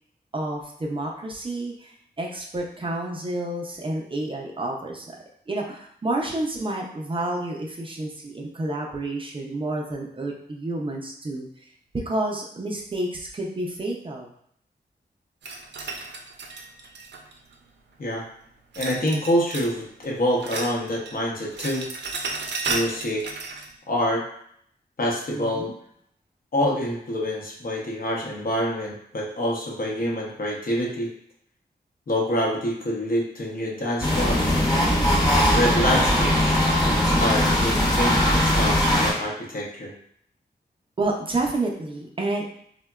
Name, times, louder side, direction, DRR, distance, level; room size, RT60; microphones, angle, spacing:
voice 1, 0.3-5.1 5.5-11.5 11.9-14.3 25.3-25.7 41.0-42.4, right 2 dB, 30° right, -1 dB, 0.4 m, -29 dB
sound 1, 15.4-17.5 18.7-19.8 20.0-21.2 21.4-23.7, right 3 dB, 90° right, 0.4 m, -33 dB
voice 2, 18.8-21.9 22.7-23.2 23.9-24.2 25.0-25.7 26.5-31.1 32.1-34.6 35.3-39.9, equal, 55° left, -3 dB, 0.7 m, -26 dB
sound 2, 34.0-39.1, left 1 dB, 20° left, 0.8 m, -20 dB
3.6 x 2.1 x 2.2 m, 0.67 s
wide cardioid pair, 120°, 17 cm